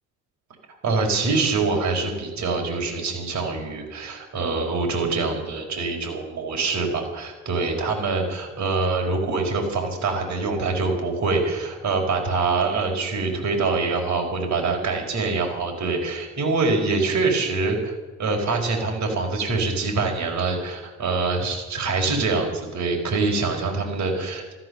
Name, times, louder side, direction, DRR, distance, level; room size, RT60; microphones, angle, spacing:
voice 1, 0.8-24.5, right 3 dB, 65° right, 2 dB, 4.7 m, -25 dB
15.0 x 13.5 x 6.7 m, 1.2 s
cardioid pair, 90°, 30 cm